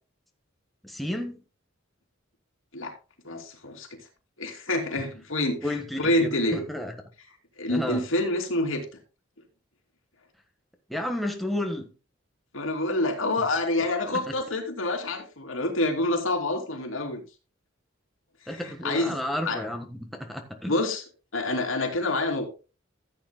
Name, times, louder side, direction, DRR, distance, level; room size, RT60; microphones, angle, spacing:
voice 1, 0.8-1.4 5.6-6.9 7.7-8.0 10.9-11.9 14.1-14.2 18.5-20.7, left 1 dB, ahead, 1.4 m, -32 dB
voice 2, 3.2-3.9 4.4-6.6 7.6-8.8 12.5-17.2 18.6-19.1 19.5-19.6 20.7-21.0 21.3-22.4, left 2 dB, 85° left, 2.8 m, -27 dB
15.0 x 8.8 x 2.2 m
head